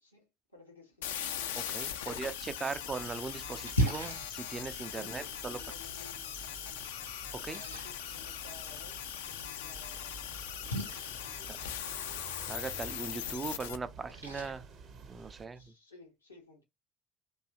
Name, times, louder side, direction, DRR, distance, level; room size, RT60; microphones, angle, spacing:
voice 1, 0.0-1.5 1.9-2.3 4.8-7.0 7.5-12.2 15.5-16.6, left 3 dB, 85° left, 0.8 m, -57 dB
sound 1, 1.0-13.8, left 10 dB, 65° left, 0.3 m, -40 dB
voice 2, 1.6-5.6 7.3-7.6 12.5-14.7 14.9-15.7, right 4 dB, 25° right, 0.3 m, -39 dB
Splash splatter, 2.7-15.7, equal, 90° right, 0.5 m, -41 dB
sound 2, 2.9-15.5, right 5 dB, 45° right, 0.7 m, -52 dB
2.7 x 2.3 x 2.3 m
figure-of-eight pair, 60°, 0 cm